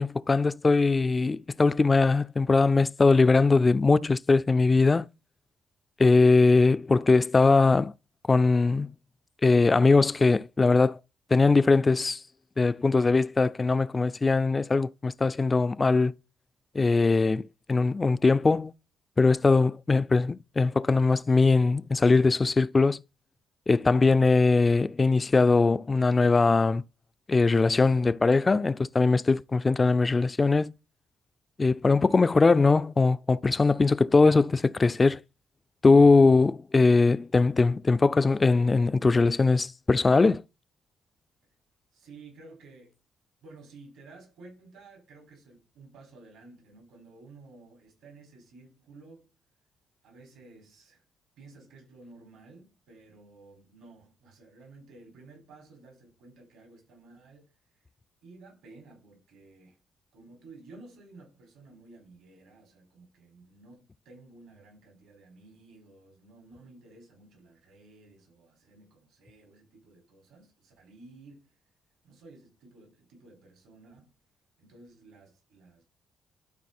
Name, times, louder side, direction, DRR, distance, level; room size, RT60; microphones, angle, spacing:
voice 1, 0.0-5.1 6.0-7.9 8.3-8.9 9.4-11.0 11.3-12.2 12.6-16.1 16.7-17.4 17.7-18.7 19.2-23.0 23.7-26.8 27.3-30.7 31.6-35.2 35.8-40.4, left 3 dB, 25° left, 0.3 m, -21 dB
voice 2, 41.9-43.0 43.4-49.3 50.0-51.0 51.4-57.8 58.2-59.8 60.1-71.6 72.0-74.1 74.6-75.8, right 3 dB, 85° right, 5.3 m, -53 dB
12.0 x 4.2 x 4.3 m
cardioid pair, 90°, 0 cm